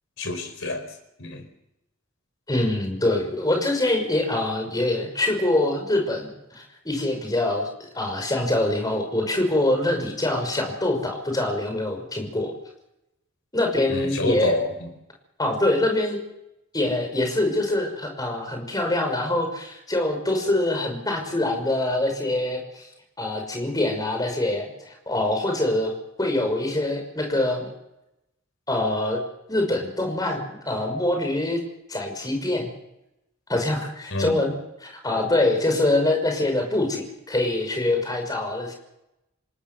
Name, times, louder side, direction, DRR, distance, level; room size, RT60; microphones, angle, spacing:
voice 1, 0.2-1.5 13.9-14.9 34.1-34.4, left 2 dB, 65° left, 7 dB, 4.8 m, -28 dB
voice 2, 2.5-7.7 7.9-12.5 13.5-14.6 15.4-16.2 16.7-22.8 23.2-27.7 28.7-29.2 29.5-31.6 31.9-32.7 33.5-34.5 34.8-38.7, left 1 dB, 20° left, 4 dB, 5.8 m, -24 dB
28.0 x 18.5 x 7.0 m, 0.86 s
head